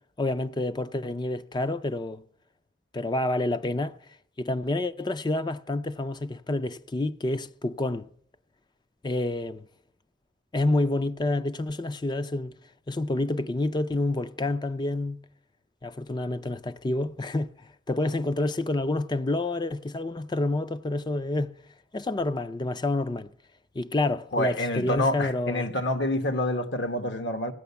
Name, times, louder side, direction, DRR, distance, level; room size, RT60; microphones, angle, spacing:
voice 1, 0.2-2.2 2.9-4.0 4.4-8.1 9.0-9.6 10.5-12.5 12.9-15.2 15.8-17.5 17.9-21.5 21.9-23.3 23.7-25.7, left 2 dB, 25° left, 0.5 m, -28 dB
voice 2, 24.3-27.5, left 1 dB, 70° left, 1.3 m, -27 dB
16.0 x 9.0 x 6.9 m
head